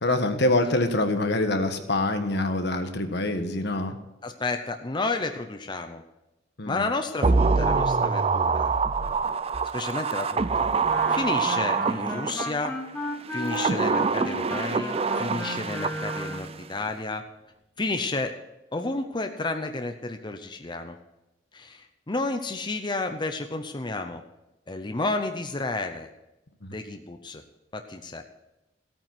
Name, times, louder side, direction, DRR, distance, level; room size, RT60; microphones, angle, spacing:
voice 1, 0.0-4.0 6.6-6.9 26.6-26.7, left 2 dB, 65° left, 7 dB, 1.4 m, -25 dB
voice 2, 4.2-6.0 6.7-8.7 9.7-10.7 11.1-12.7 13.3-17.2 17.8-18.4 18.7-21.0 21.5-24.2 24.7-26.1 26.7-27.4 27.7-28.2, left 3 dB, 25° left, 6 dB, 0.8 m, -31 dB
sound 1, 7.2-12.7 13.3-16.5 16.8-16.9, right 4 dB, 30° right, 0.5 m, -25 dB
Wind instrument woodwind instrument, 10.8-16.6, left 1 dB, 10° left, 1.8 m, -35 dB
16.0 x 9.0 x 6.1 m, 0.96 s
head